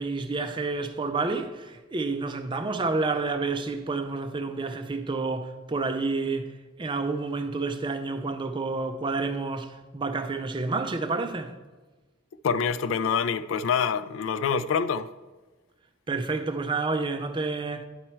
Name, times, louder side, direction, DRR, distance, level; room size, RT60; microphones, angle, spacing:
voice 1, 0.0-6.5 6.8-11.5 16.1-17.8, right 3 dB, 25° right, 0.5 m, -29 dB
voice 2, 12.4-15.1, left 6 dB, 70° left, 0.3 m, -26 dB
11.0 x 4.4 x 4.4 m
head